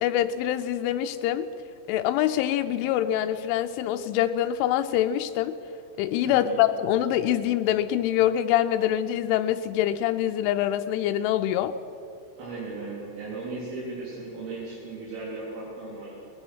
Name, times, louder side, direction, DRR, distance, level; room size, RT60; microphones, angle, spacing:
voice 1, 0.0-1.5 1.9-5.6 6.0-11.8, left 11 dB, 85° left, 8 dB, 3.0 m, -25 dB
voice 2, 6.2-6.6 12.4-16.1, right 3 dB, 85° right, -8 dB, 6.3 m, -36 dB
22.5 x 19.0 x 6.2 m, 2.9 s
omnidirectional pair, 5.6 m